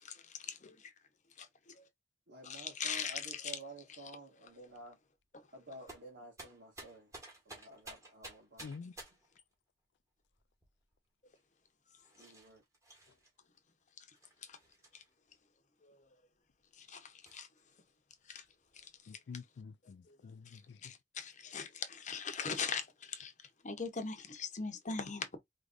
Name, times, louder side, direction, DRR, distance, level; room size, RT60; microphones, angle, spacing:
voice 1, 2.3-5.0 5.5-7.1 7.5-8.7 12.1-12.6, right 2 dB, 75° right, 1.8 m, -52 dB
voice 2, 2.8-3.2 16.9-17.0 17.3-17.5 18.3-18.4 20.8-22.8 23.1-23.3 23.6-25.3, left 5 dB, 45° left, 0.9 m, -39 dB
sound 1, 5.9-9.4 10.2-10.9 11.3-11.4 12.0-13.3 14.1-15.3 16.0-16.1 16.5-16.6 17.2-17.7 18.1-19.0, right 2 dB, 20° right, 1.7 m, -54 dB
voice 3, 8.6-8.9 19.1-20.8, left 5 dB, 70° left, 0.3 m, -48 dB
4.9 x 3.2 x 2.5 m
head